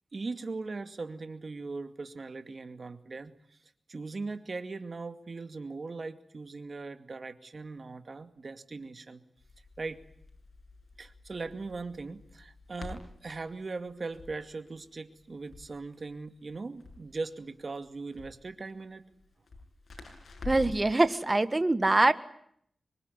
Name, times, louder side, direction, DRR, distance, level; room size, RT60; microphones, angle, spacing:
voice 1, 0.1-3.6 3.9-9.2 9.8-10.0 11.0-19.1, right 3 dB, 55° right, 9 dB, 2.3 m, -39 dB
Crackle, 9.4-20.9, left 3 dB, 65° left, 7.3 m, -48 dB
voice 2, 20.4-22.1, right 2 dB, 30° right, 12 dB, 1.6 m, -24 dB
26.0 x 22.5 x 9.7 m, 0.69 s
cardioid pair, 65°, 0 cm